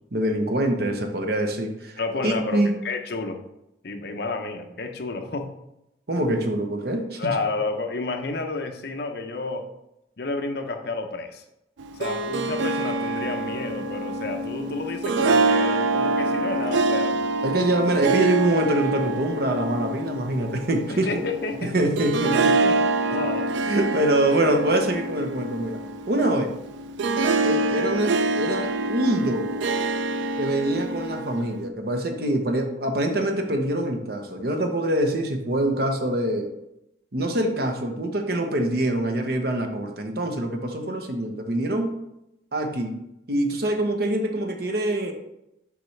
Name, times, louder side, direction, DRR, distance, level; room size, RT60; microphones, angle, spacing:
voice 1, 0.1-2.7 6.1-7.3 17.4-21.1 21.6-22.6 23.1-23.2 23.7-25.8 26.1-26.5 27.4-29.5 30.4-36.5 37.1-41.9 42.5-42.9 43.3-45.1, right 1 dB, 55° right, 4 dB, 0.8 m, -24 dB
voice 2, 2.0-3.4 3.8-5.5 7.2-9.7 10.2-11.4 11.9-17.2 20.9-21.7 22.6-22.8 23.1-23.5 26.2-26.4, left 3 dB, 60° left, 5 dB, 0.8 m, -30 dB
Harp, 11.8-31.6, right 2 dB, 80° right, 0.4 m, -26 dB
7.0 x 5.1 x 3.3 m, 0.86 s
head